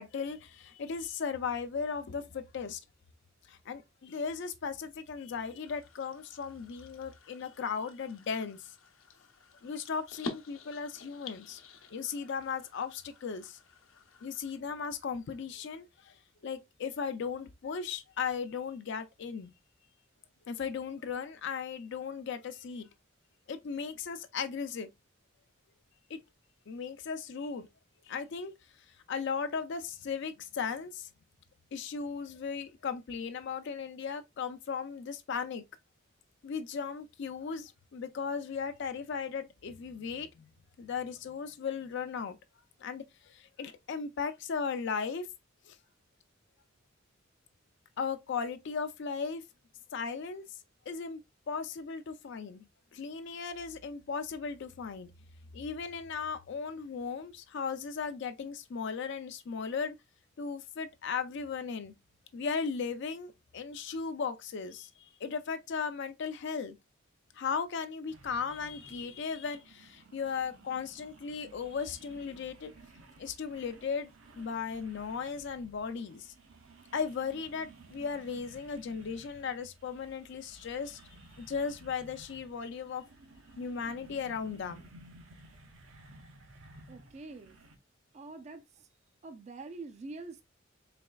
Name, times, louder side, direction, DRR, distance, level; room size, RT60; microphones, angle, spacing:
voice 1, 0.0-2.8 3.5-8.7 9.6-11.6 11.9-13.6 14.2-16.1 16.4-19.5 20.5-22.9 23.5-24.9 26.1-26.2 26.7-27.7 28.1-28.5 29.1-31.1 31.7-35.6 36.4-40.5 40.8-42.4 42.8-45.3 45.7-45.8 48.0-49.4 49.9-50.4 50.9-51.2 51.5-52.7 52.9-55.1 55.5-59.9 60.4-61.9 62.3-66.8 67.3-72.7 73.2-74.1 74.4-76.3 76.9-81.0 81.4-83.0 83.6-84.9, left 5 dB, 60° left, 0.4 m, -36 dB
sound 1, 5.6-14.6, left 3 dB, 85° left, 0.8 m, -48 dB
sound 2, 68.1-87.8, right 2 dB, 80° right, 0.8 m, -56 dB
voice 2, 86.9-87.6 88.1-88.9 89.2-90.4, right 3 dB, 35° right, 0.3 m, -45 dB
4.2 x 3.1 x 2.2 m
head